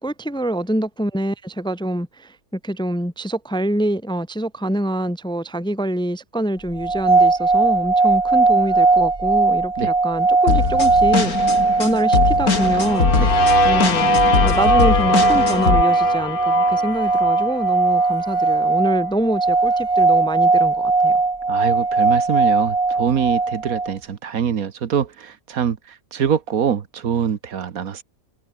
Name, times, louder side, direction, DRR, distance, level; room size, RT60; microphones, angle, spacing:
voice 1, 0.0-11.3 11.8-13.1 13.6-21.2, right 1 dB, 5° left, 0.8 m, -25 dB
sound 1, 6.8-23.9, right 3 dB, 25° right, 1.3 m, -18 dB
sound 2, 10.5-15.8, left 4 dB, 80° left, 3.3 m, -21 dB
sound 3, 12.5-18.4, left 8 dB, 50° left, 0.8 m, -26 dB
voice 2, 21.5-28.0, right 8 dB, 75° right, 1.7 m, -24 dB
omnidirectional pair, 1.5 m